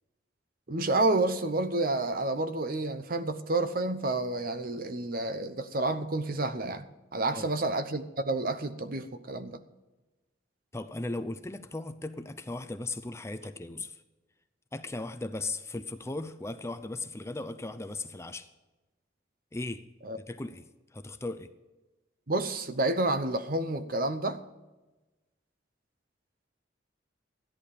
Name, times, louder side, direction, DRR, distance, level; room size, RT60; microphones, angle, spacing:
voice 1, 0.7-6.9 7.1-9.6 20.0-20.2 22.3-24.4, right 2 dB, 50° right, 0.9 m, -29 dB
voice 2, 10.7-14.0 14.7-18.5 19.5-19.8 20.3-21.5, left 2 dB, 15° left, 0.6 m, -37 dB
14.0 x 10.5 x 5.0 m
head